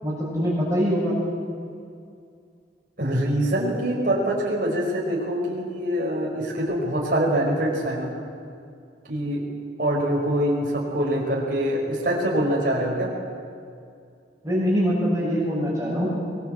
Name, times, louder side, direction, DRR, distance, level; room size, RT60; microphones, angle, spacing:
voice 1, 0.0-1.1 14.4-16.1, equal, 15° right, -9 dB, 7.1 m, -23 dB
voice 2, 3.0-8.1 9.1-9.4 9.8-13.1, right 1 dB, 50° right, -4 dB, 5.2 m, -24 dB
23.5 x 21.5 x 8.2 m, 2.3 s
head